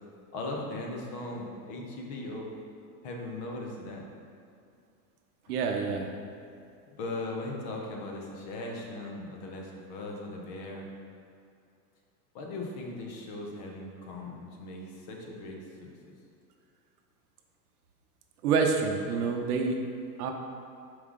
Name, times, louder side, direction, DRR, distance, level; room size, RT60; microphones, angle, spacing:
voice 1, 0.3-2.6 3.0-4.1 6.9-10.9 12.3-16.1, left 2 dB, 25° left, 0 dB, 0.5 m, -38 dB
voice 2, 5.5-6.1 18.4-19.8 20.2-20.3, right 5 dB, 70° right, 3 dB, 0.8 m, -27 dB
5.4 x 4.8 x 3.7 m, 2.4 s
supercardioid pair, 170°, 47 cm